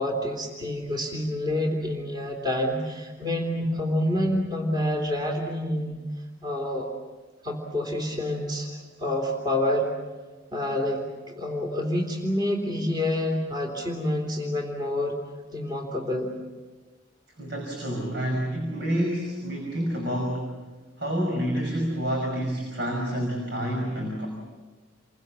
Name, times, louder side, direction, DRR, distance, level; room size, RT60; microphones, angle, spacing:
voice 1, 0.0-6.0 6.4-6.9 7.4-9.9 10.5-15.1 15.5-16.3, left 1 dB, 20° right, 2 dB, 3.3 m, -28 dB
voice 2, 17.4-20.6 21.0-24.3, equal, 60° right, 1 dB, 5.5 m, -28 dB
29.5 x 23.5 x 7.5 m, 1.3 s
head